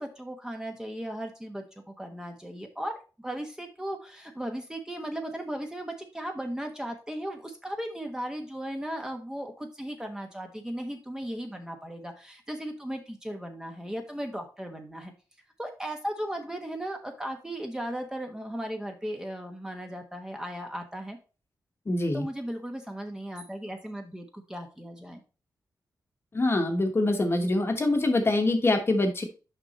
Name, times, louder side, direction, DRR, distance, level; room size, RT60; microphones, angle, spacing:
voice 1, 0.0-15.1 15.6-21.2 22.1-25.2, right 1 dB, 10° right, 3 dB, 1.2 m, -36 dB
voice 2, 21.9-22.2 26.3-29.2, left 2 dB, 35° left, 4 dB, 1.3 m, -24 dB
5.9 x 5.3 x 4.1 m, 0.33 s
wide cardioid pair, 100°, 7 cm